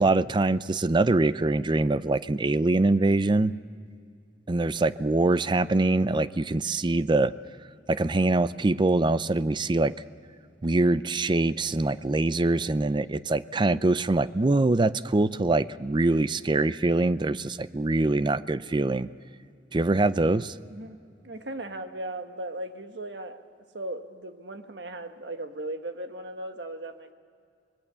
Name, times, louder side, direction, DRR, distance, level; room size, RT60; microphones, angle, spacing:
voice 1, 0.0-3.5 4.5-7.3 7.9-9.9 10.6-19.1 19.7-20.5, right 2 dB, 25° right, 15 dB, 0.5 m, -24 dB
voice 2, 21.2-23.4 23.7-27.1, right 1 dB, 70° right, 7 dB, 1.4 m, -37 dB
25.5 x 21.0 x 6.9 m, 2.3 s
head